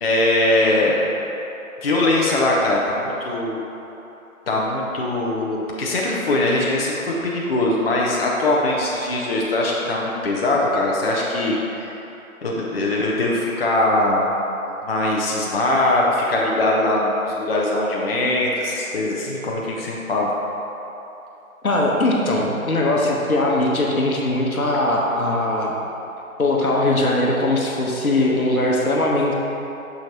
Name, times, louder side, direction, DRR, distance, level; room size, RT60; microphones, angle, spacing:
voice 1, 0.0-0.9 1.8-3.6 4.5-11.9 12.4-14.4 14.9-20.3, left 2 dB, 45° left, -4 dB, 0.7 m, -21 dB
voice 2, 21.6-25.7 26.4-29.3, left 2 dB, 80° left, -2 dB, 1.1 m, -20 dB
6.4 x 5.7 x 2.8 m, 3.0 s
figure-of-eight pair, 150°, 43 cm